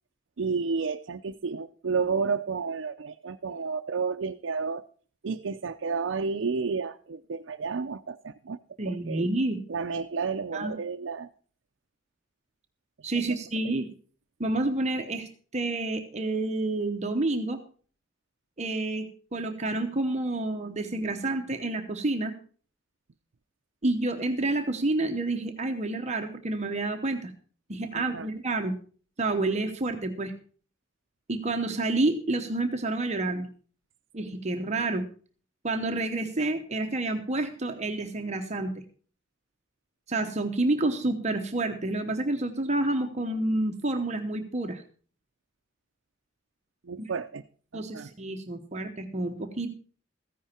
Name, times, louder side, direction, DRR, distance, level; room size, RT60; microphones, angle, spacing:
voice 1, 0.4-4.9 5.2-8.6 8.8-9.2 9.7-11.3 13.0-13.1 28.1-28.3 46.8-47.4 47.7-48.1, right 5 dB, 80° right, 5 dB, 0.5 m, -31 dB
voice 2, 8.8-9.6 10.5-10.7 13.0-13.9 14.4-17.6 18.6-19.1 19.3-22.3 23.8-27.3 27.7-28.8 29.2-30.3 31.3-33.5 34.1-35.0 35.6-38.7 40.1-44.8 47.0-47.1 47.7-49.7, right 2 dB, 35° right, 5 dB, 0.9 m, -29 dB
14.5 x 10.5 x 4.4 m, 0.42 s
head